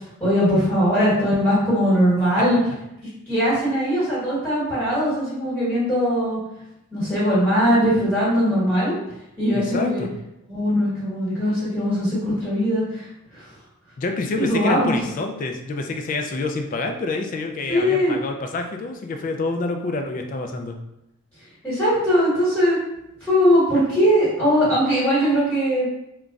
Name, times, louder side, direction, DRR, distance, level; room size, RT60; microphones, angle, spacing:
voice 1, 0.2-2.6 3.3-6.4 6.9-9.0 9.4-10.0 10.5-13.0 13.3-13.4 14.3-15.0 17.7-18.2 21.6-22.8 23.2-25.9, equal, 10° left, -12 dB, 1.4 m, -20 dB
voice 2, 9.5-10.1 14.0-20.8, left 3 dB, 40° left, 4 dB, 0.3 m, -27 dB
3.8 x 2.2 x 2.4 m, 0.86 s
head